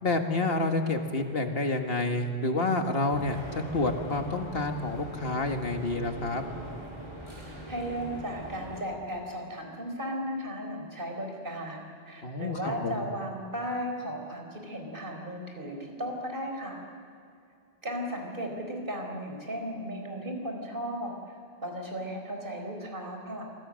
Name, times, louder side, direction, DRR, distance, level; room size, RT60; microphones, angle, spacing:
voice 1, 0.0-6.5 12.2-13.1, left 2 dB, 55° left, 4 dB, 2.1 m, -29 dB
sound 1, 3.1-8.8, right 1 dB, 25° right, 4.6 m, -42 dB
voice 2, 7.4-16.8 17.8-21.1 21.6-23.4, equal, 50° right, 2 dB, 4.5 m, -35 dB
27.5 x 23.0 x 6.5 m, 2.5 s
omnidirectional pair, 1.2 m